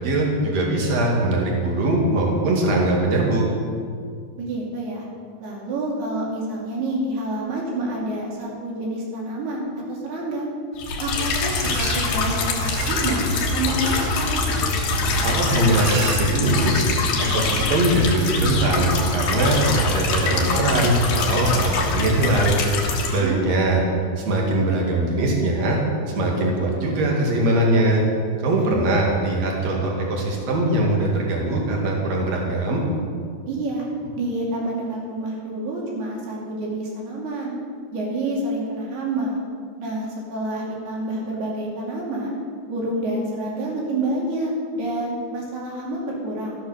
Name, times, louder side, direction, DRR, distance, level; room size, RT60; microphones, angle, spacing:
voice 1, 0.0-3.4 15.2-16.9 17.2-22.6 23.0-23.8 24.2-25.8 26.1-28.0 28.4-32.8, right 1 dB, 45° right, -1 dB, 2.9 m, -21 dB
voice 2, 4.4-5.1 5.4-10.5 11.0-13.3 13.5-14.4 23.2-23.5 28.6-28.9 33.5-33.9 34.2-37.5 37.9-39.4 39.8-42.4 42.7-46.6, right 1 dB, 60° right, -3 dB, 4.4 m, -28 dB
sound 1, 10.8-23.2, left 3 dB, 60° left, 3.0 m, -24 dB
sound 2, 11.5-16.9, right 5 dB, 90° right, 1.6 m, -36 dB
14.0 x 10.0 x 6.6 m, 2.1 s
omnidirectional pair, 5.3 m